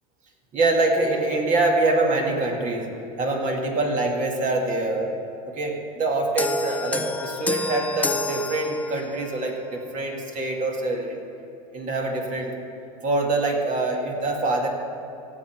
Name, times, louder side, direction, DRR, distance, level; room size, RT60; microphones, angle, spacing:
voice 1, 0.5-5.1 5.5-11.2 11.7-12.6 13.0-14.7, right 2 dB, 40° right, 1 dB, 2.0 m, -24 dB
sound 1, 6.4-9.3, left 3 dB, 10° left, 0.4 m, -29 dB
17.0 x 7.3 x 4.5 m, 2.9 s
supercardioid pair, 115°, 19 cm